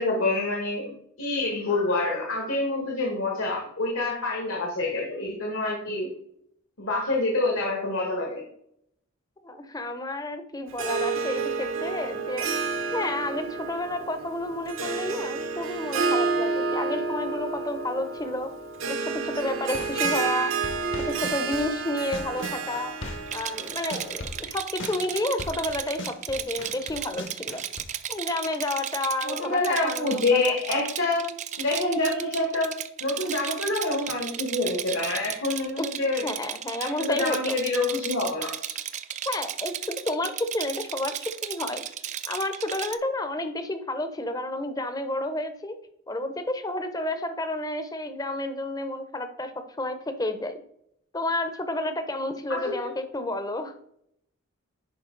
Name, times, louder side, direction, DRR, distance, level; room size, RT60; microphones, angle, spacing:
voice 1, 0.0-6.1 6.8-8.4 29.2-31.3 31.6-32.7 33.0-36.3 36.8-38.8 52.5-52.8, left 2 dB, 75° left, -1 dB, 1.6 m, -27 dB
voice 2, 9.4-18.5 18.9-20.5 21.1-22.9 23.3-27.6 28.1-30.5 35.8-35.9 36.2-37.5 39.3-41.8 42.3-45.8 46.1-50.6 51.1-53.7, left 1 dB, 15° left, 9 dB, 0.6 m, -31 dB
Harp, 10.7-24.4, right 4 dB, 70° right, 1.0 m, -30 dB
sound 1, 19.5-20.2 20.6-23.4 23.6-27.8, left 2 dB, 55° left, 1.0 m, -38 dB
Rattle, 23.3-43.0, right 10 dB, 35° right, 0.4 m, -35 dB
10.5 x 4.5 x 3.8 m, 0.73 s
head